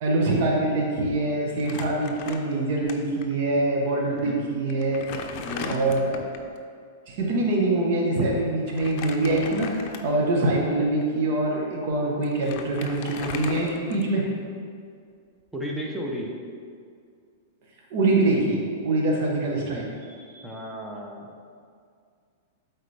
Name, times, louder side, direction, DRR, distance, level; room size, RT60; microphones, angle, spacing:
voice 1, 0.0-5.0 5.6-6.2 7.1-14.2 17.9-19.8 20.3-20.4, right 2 dB, 55° right, -2 dB, 1.3 m, -24 dB
Crumpling crinkling, 1.6-2.9 3.2-3.3 4.2-4.3 4.7-6.5 8.7-10.3 10.9-11.0 11.9-12.0 12.2-14.3, left 6 dB, 45° left, 0.6 m, -37 dB
voice 2, 5.4-5.8 15.5-16.3 20.4-21.3, equal, 5° right, -2 dB, 0.9 m, -33 dB
8.3 x 4.2 x 3.5 m, 2.2 s
hypercardioid pair, 135°, 0 cm